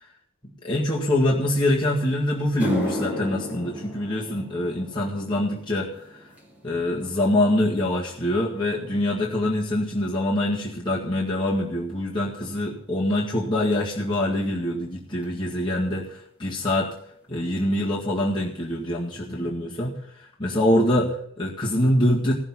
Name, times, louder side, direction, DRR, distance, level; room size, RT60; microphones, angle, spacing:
voice 1, 0.6-5.9 6.6-16.9 17.3-19.9 20.4-22.3, left 1 dB, 25° left, -6 dB, 1.9 m, -24 dB
sound 1, 1.9-2.0 2.4-10.9 11.2-11.6 12.4-12.5 15.2-15.3 17.0-17.1 17.2-17.5 17.8-18.3 18.7-18.8 19.3-19.4, left 1 dB, 10° right, 2.7 m, -36 dB
15.5 x 7.2 x 7.4 m, 0.66 s
head